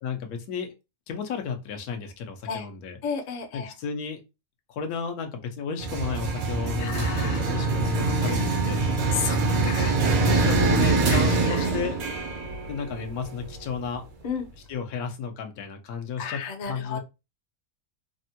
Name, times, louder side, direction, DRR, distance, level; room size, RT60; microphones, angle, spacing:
voice 1, 0.0-0.7 1.1-3.0 3.5-4.2 4.7-8.8 9.3-9.9 10.2-12.0 12.7-14.0 14.7-17.0, left 6 dB, 85° left, 5 dB, 1.2 m, -33 dB
voice 2, 3.0-3.7 6.8-7.7 9.1-9.4 9.6-9.9 11.1-11.7 14.2-14.4 16.2-17.0, left 6 dB, 70° left, 3 dB, 0.4 m, -33 dB
sound 1, 5.8-13.8, right 3 dB, 80° right, 1.3 m, -24 dB
3.4 x 2.1 x 2.7 m, 0.26 s
omnidirectional pair, 1.5 m